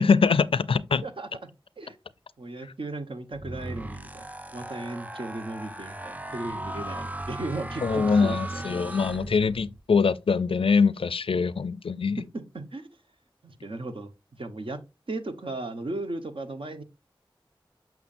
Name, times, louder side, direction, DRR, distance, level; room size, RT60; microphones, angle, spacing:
voice 1, 0.0-1.0 7.8-12.2, left 5 dB, 85° left, 0.4 m, -23 dB
voice 2, 1.0-1.5 1.8-2.0 2.4-4.3 4.5-8.6 12.3-12.9 13.4-14.1 14.4-14.8 15.1-16.8, right 2 dB, 70° right, 1.1 m, -36 dB
sound 1, 3.3-9.8, right 1 dB, 15° right, 0.6 m, -37 dB
7.1 x 6.1 x 2.5 m
wide cardioid pair, 55°, 9 cm